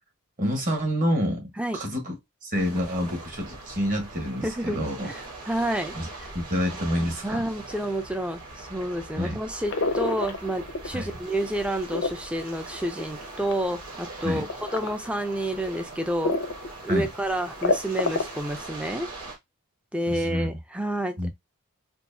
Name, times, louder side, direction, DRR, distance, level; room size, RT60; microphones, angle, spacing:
voice 1, 0.4-5.1 5.9-6.1 6.3-7.4 9.2-9.4 10.9-11.1 14.2-14.5 16.9-17.1 20.1-20.5 21.2-21.3, equal, 35° right, 1.3 m, -28 dB
sound 1, 2.5-19.4, right 2 dB, 90° right, 2.0 m, -41 dB
voice 2, 4.4-6.3 7.2-14.5 14.7-16.3 16.8-19.1 19.9-21.3, right 1 dB, 5° right, 0.5 m, -29 dB
sound 2, 9.7-11.0 11.4-13.7 14.5-14.9 15.5-15.6 16.2-16.7 17.0-17.1 17.4-18.5, left 3 dB, 60° left, 0.6 m, -27 dB
4.5 x 2.4 x 2.7 m
head